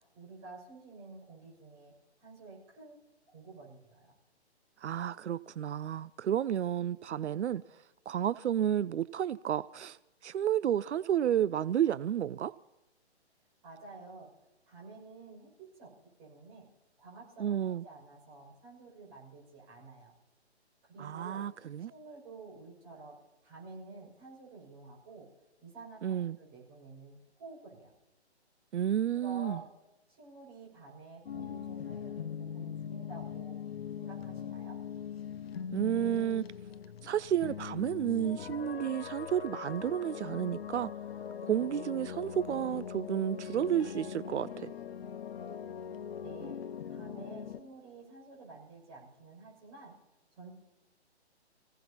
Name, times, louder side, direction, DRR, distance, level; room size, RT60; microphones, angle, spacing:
voice 1, 0.1-1.9 2.2-3.0 3.3-4.1 13.6-14.3 14.7-15.9 16.2-16.6 17.0-20.1 20.8-21.4 21.9-23.2 23.4-25.3 25.6-27.9 29.2-29.7 30.1-33.6 34.0-34.8 46.2-46.6 46.9-49.9 50.3-50.5, right 3 dB, 25° right, 6.3 m, -50 dB
voice 2, 4.8-12.5 17.4-17.8 21.0-21.9 26.0-26.4 28.7-29.6 35.7-36.5 37.0-40.9 41.4-44.7, right 10 dB, 80° right, 0.5 m, -31 dB
sound 1, 31.3-47.6, left 8 dB, 60° left, 0.8 m, -41 dB
29.0 x 17.0 x 2.9 m
hypercardioid pair, 160°, 34 cm